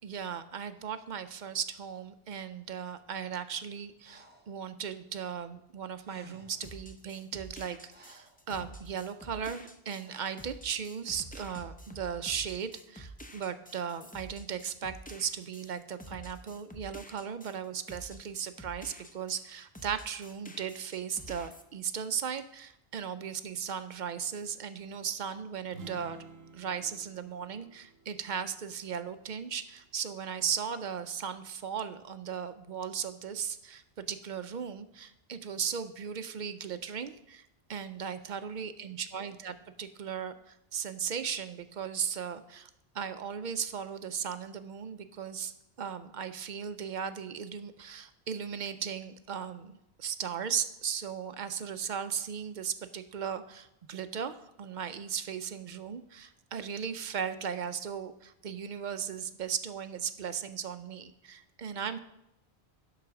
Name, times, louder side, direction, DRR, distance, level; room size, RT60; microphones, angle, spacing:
voice 1, 0.0-26.2 26.5-42.7 42.9-45.5 45.8-62.0, right 7 dB, 55° right, 11 dB, 0.6 m, -37 dB
Breathing, 4.0-4.6 5.7-5.8 6.0-6.7 7.4-8.4 10.0-10.5, right 1 dB, 10° right, 0.8 m, -57 dB
sound 1, 6.6-19.5 19.7-21.6, right 1 dB, 10° left, 0.4 m, -49 dB
sound 2, 25.6-29.4, right 3 dB, 75° right, 0.9 m, -51 dB
11.5 x 4.0 x 5.9 m, 0.82 s
omnidirectional pair, 1.1 m